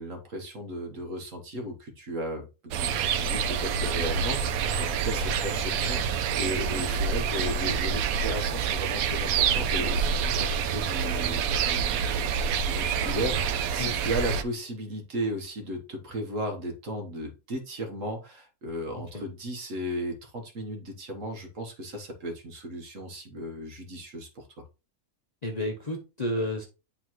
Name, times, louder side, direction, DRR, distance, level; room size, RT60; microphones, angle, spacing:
voice 1, 0.0-12.2 12.6-24.6, equal, 60° right, 3 dB, 1.6 m, -35 dB
sound 1, 2.7-14.4, right 6 dB, 75° right, 1.0 m, -27 dB
voice 2, 25.4-26.7, left 1 dB, 35° left, 1 dB, 0.8 m, -31 dB
9.7 x 3.8 x 3.0 m, 0.31 s
omnidirectional pair, 1.6 m